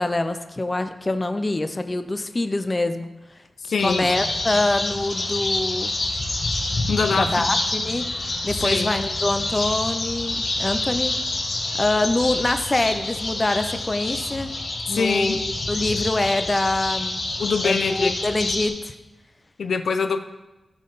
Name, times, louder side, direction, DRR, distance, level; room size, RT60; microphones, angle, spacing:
voice 1, 0.0-3.1 3.6-5.9 7.2-8.0 8.4-11.1 11.8-14.5 14.9-15.4 15.7-17.2 17.6-18.9, left 2 dB, 20° left, 9 dB, 0.5 m, -24 dB
voice 2, 3.6-4.1 6.9-7.5 8.5-8.9 14.9-15.4 17.4-18.2 19.6-20.2, left 5 dB, 75° left, 9 dB, 0.4 m, -24 dB
sound 1, 3.8-18.7, left 2 dB, 50° left, 1.8 m, -27 dB
16.0 x 5.5 x 3.9 m, 1.1 s
wide cardioid pair, 160°, 0 cm